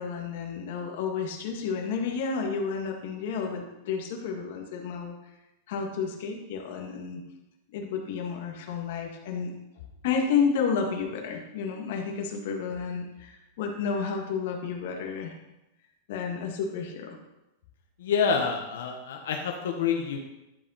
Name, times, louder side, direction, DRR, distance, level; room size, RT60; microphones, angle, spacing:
voice 1, 0.0-5.1 5.7-7.2 7.7-9.6 10.0-15.4 16.1-17.2, left 6 dB, 55° left, 2 dB, 1.8 m, -31 dB
voice 2, 18.0-20.2, left 6 dB, 85° left, 2 dB, 1.2 m, -27 dB
11.5 x 5.4 x 5.7 m, 0.94 s
supercardioid pair, 175°, 0 cm